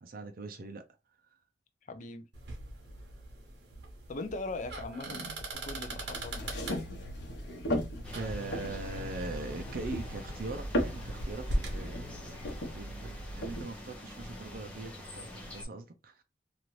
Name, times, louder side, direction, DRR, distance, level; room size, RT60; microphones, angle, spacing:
voice 1, 0.0-0.8 5.1-5.4 8.1-16.2, right 3 dB, 50° right, 0.5 m, -41 dB
voice 2, 1.9-2.3 4.1-5.2 5.6-6.6, left 2 dB, 45° left, 0.4 m, -40 dB
sound 1, 2.3-11.8, right 1 dB, 70° right, 0.9 m, -41 dB
sound 2, 5.5-13.6, equal, 75° left, 1.0 m, -37 dB
sound 3, 8.0-15.6, left 1 dB, 5° left, 0.7 m, -46 dB
2.8 x 2.5 x 3.1 m
head